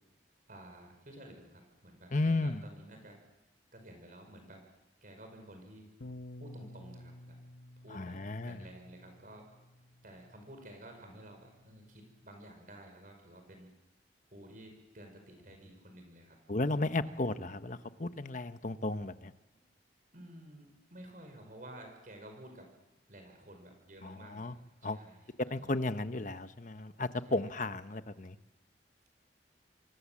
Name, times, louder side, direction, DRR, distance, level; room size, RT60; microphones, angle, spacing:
voice 1, 0.5-3.2 3.7-4.7 5.0-5.9 6.4-7.4 7.8-9.5 10.0-13.7 14.3-16.4 17.1-17.2 19.5-19.6 20.1-22.7 23.1-25.8 27.2-27.6, right 1 dB, 45° right, 4 dB, 5.2 m, -52 dB
voice 2, 2.1-2.6 7.9-8.6 16.5-19.3 24.0-24.5 24.8-25.0 25.5-28.4, left 2 dB, 45° left, 11 dB, 1.0 m, -34 dB
Bass guitar, 6.0-12.2, left 1 dB, 75° left, 1.1 m, -53 dB
27.0 x 23.0 x 7.5 m, 1.0 s
head